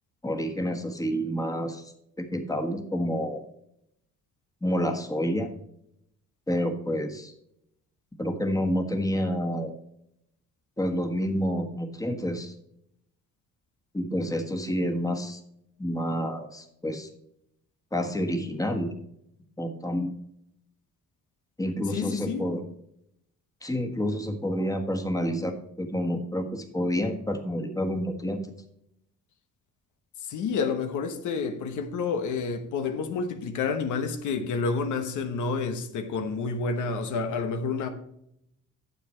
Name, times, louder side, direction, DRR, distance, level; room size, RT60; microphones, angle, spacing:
voice 1, 0.2-3.4 4.6-5.5 6.5-7.3 8.2-9.7 10.8-12.5 13.9-15.4 15.8-17.1 17.9-18.9 19.6-20.1 21.6-22.6 23.6-28.4, equal, 10° left, 1.5 m, -29 dB
voice 2, 21.9-22.4 30.2-37.9, left 4 dB, 75° left, 1.1 m, -29 dB
9.3 x 7.1 x 4.4 m
cardioid pair, 90°, 30 cm